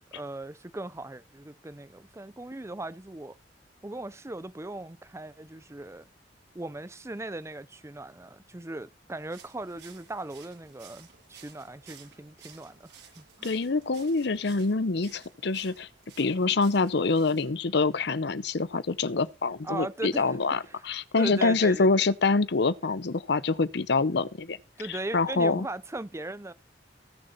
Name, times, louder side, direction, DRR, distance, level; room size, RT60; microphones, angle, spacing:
voice 1, 0.1-3.4 3.8-6.1 6.5-13.5 19.6-20.4 20.6-20.8 21.2-22.1 24.8-26.5, right 2 dB, 15° right, 0.6 m, -38 dB
sound 1, 9.1-17.5, right 7 dB, 85° right, 6.7 m, -54 dB
voice 2, 13.4-15.9 16.2-24.6 24.9-25.7, left 3 dB, 65° left, 0.7 m, -26 dB
20.0 x 6.7 x 4.1 m
head